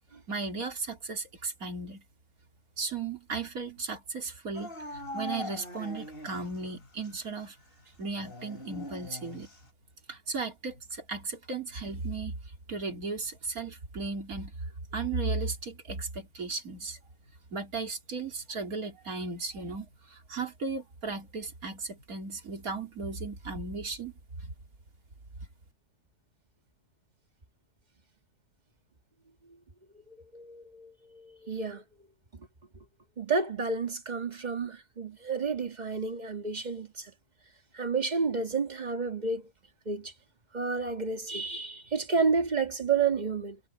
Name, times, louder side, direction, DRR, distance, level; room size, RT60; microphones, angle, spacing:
voice 1, 0.3-2.0 2.8-7.6 8.0-9.5 10.1-12.3 12.7-14.5 14.9-17.0 17.5-24.1 24.4-24.5, right 4 dB, 65° right, 3.8 m, -35 dB
Dog / Siren, 4.5-6.7 7.0-7.1 8.1-9.7, left 1 dB, 35° left, 5.3 m, -41 dB
voice 2, 30.1-31.8 33.2-37.1 37.7-39.4 39.9-40.1 40.5-43.6, right 4 dB, 30° right, 1.7 m, -30 dB
omnidirectional pair, 1.6 m